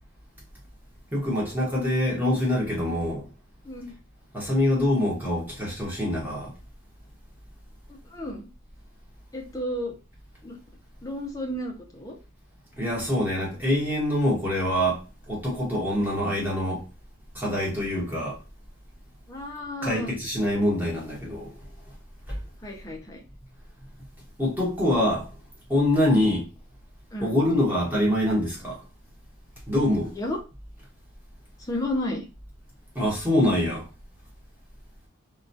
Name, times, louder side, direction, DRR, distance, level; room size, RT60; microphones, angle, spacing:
voice 1, 1.1-3.3 4.3-6.5 12.8-16.8 17.3-18.4 19.8-21.5 22.3-22.4 24.4-25.3 25.7-26.5 27.2-28.8 29.7-30.1 32.9-33.9, left 1 dB, 10° right, 0.9 m, -25 dB
voice 2, 7.9-8.5 9.3-9.9 10.4-10.6 11.0-12.2 16.0-16.1 19.3-20.1 22.6-23.2 26.1-26.3 27.1-27.4 30.2-30.4 31.7-32.2, left 1 dB, 15° left, 0.4 m, -32 dB
2.2 x 2.2 x 2.6 m
head